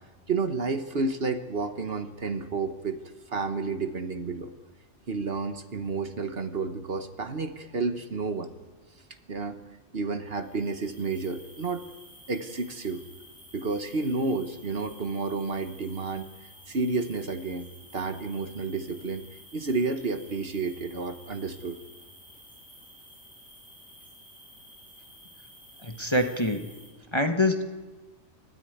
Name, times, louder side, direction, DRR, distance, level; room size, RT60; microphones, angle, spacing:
voice 1, 0.3-3.0 3.3-4.5 5.1-8.5 9.3-9.6 9.9-11.8 12.3-13.0 13.5-16.3 16.7-19.2 19.5-21.8, right 4 dB, 50° right, 9 dB, 1.3 m, -31 dB
sound 1, 10.3-26.9, equal, ahead, 7.2 m, -52 dB
voice 2, 25.8-26.7 27.1-27.6, left 1 dB, 20° left, 5 dB, 1.2 m, -25 dB
30.0 x 13.5 x 9.3 m, 1.3 s
omnidirectional pair, 1.4 m